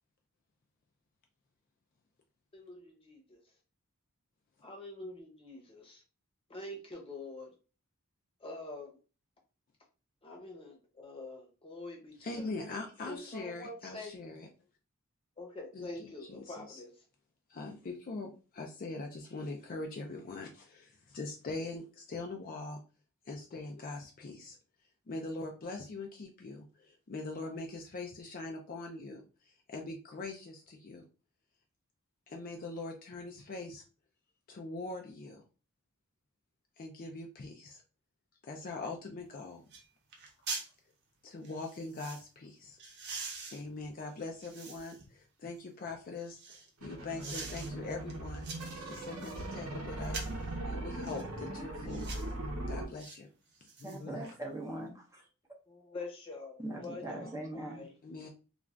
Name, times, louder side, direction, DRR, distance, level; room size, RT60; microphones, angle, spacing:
voice 1, 2.5-3.4 4.6-6.0 6.5-7.5 8.4-9.0 10.2-12.4 13.1-14.1 15.4-16.9 47.2-47.3 55.7-57.9, left 2 dB, 25° left, 1 dB, 0.8 m, -45 dB
voice 2, 12.2-14.5 15.7-16.8 17.5-22.8 23.3-24.6 25.1-31.0 32.3-33.8 34.5-35.4 36.8-37.8 38.4-39.6 41.2-42.8 43.5-48.5 48.9-52.2 52.7-53.3 53.8-54.2 58.0-58.3, left 3 dB, 40° left, 2 dB, 0.4 m, -42 dB
sound 1, 39.2-39.3 39.7-39.9 40.1-40.7 41.4-42.2 42.8-45.1 45.6-46.7 47.2-47.7 48.1-49.4 50.0-50.4 51.0-51.3 51.9-52.3 53.0-53.2 53.5-54.4 54.7-54.8, right 4 dB, 50° right, 0.7 m, -44 dB
sound 2, 46.8-52.9, right 1 dB, 85° right, 0.7 m, -39 dB
voice 3, 53.8-55.3 56.6-57.9, right 1 dB, 15° right, 0 dB, 0.5 m, -41 dB
2.4 x 2.3 x 3.2 m, 0.34 s
head